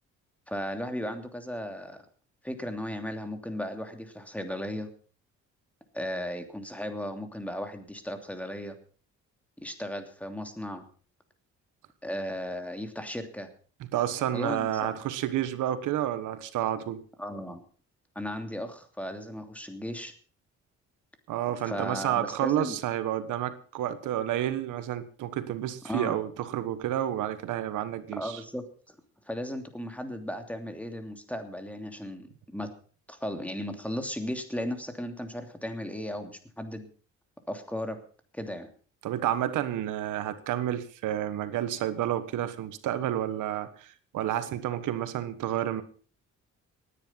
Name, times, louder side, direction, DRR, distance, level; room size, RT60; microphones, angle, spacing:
voice 1, 0.5-2.0 2.4-4.9 5.9-8.7 9.6-10.8 12.0-13.5 14.3-14.9 17.2-17.6 18.1-20.1 21.6-22.8 25.8-26.2 28.2-28.9 29.3-32.7 33.1-36.9 37.5-38.0 38.3-38.7, equal, 5° left, 7 dB, 2.9 m, -36 dB
voice 2, 13.8-17.0 21.3-28.4 39.0-45.8, right 12 dB, 85° right, 12 dB, 1.4 m, -30 dB
18.5 x 10.0 x 5.7 m, 0.42 s
cardioid pair, 90°, 30 cm